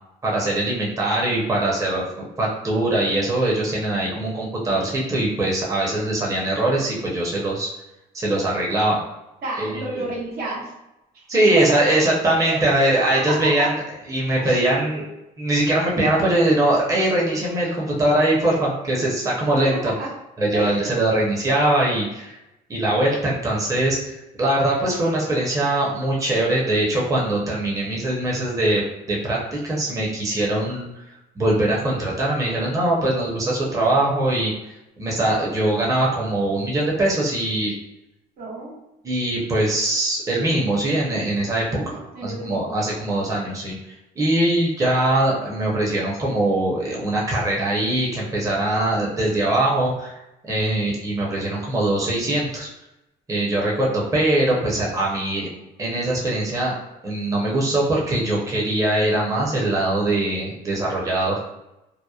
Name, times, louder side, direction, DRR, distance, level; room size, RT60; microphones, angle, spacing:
voice 1, 0.2-2.0 2.4-7.7 8.1-9.0 9.6-10.1 11.3-13.8 14.1-15.0 15.4-19.9 20.4-22.4 22.7-24.0 24.4-28.8 29.1-30.9 31.4-34.5 35.0-37.7 39.0-43.7 44.2-50.2 50.5-52.7 53.3-55.5 55.8-56.7 57.0-61.3, right 1 dB, 20° right, -4 dB, 0.7 m, -22 dB
voice 2, 9.4-10.7 11.1-12.0 12.4-12.6 13.0-13.7 14.4-14.6 15.0-15.1 19.6-20.1 20.5-21.0 38.4-38.8 41.7-42.8, right 2 dB, 65° right, -4 dB, 0.9 m, -30 dB
2.8 x 2.0 x 2.3 m, 0.93 s
cardioid pair, 110°, 17 cm